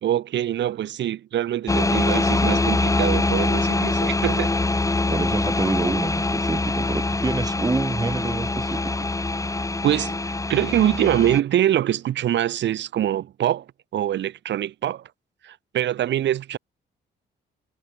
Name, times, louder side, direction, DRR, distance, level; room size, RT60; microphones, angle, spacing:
voice 1, 0.0-4.5 9.8-13.6 13.9-15.0 15.4-16.6, right 11 dB, 65° right, 1.0 m, -24 dB
sound 1, 1.7-11.4, left 2 dB, 15° left, 2.0 m, -24 dB
voice 2, 5.1-8.9, right 3 dB, 20° right, 1.8 m, -27 dB
cardioid pair, 90°, 20 cm